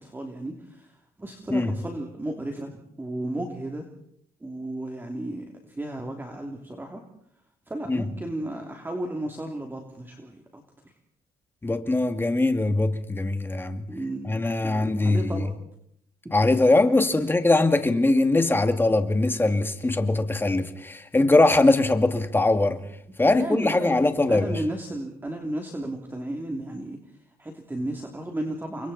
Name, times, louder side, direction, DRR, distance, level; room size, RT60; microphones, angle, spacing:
voice 1, 0.0-3.9 4.4-7.0 7.7-10.9 13.9-14.3 14.6-15.5 16.4-16.6 23.3-23.9 24.3-27.0 27.4-28.9, right 1 dB, 10° right, 3.0 m, -34 dB
voice 2, 11.6-13.9 14.3-15.5 16.3-22.8 23.2-24.6, left 2 dB, 15° left, 2.2 m, -21 dB
30.0 x 23.5 x 4.3 m
cardioid pair, 110°, 17 cm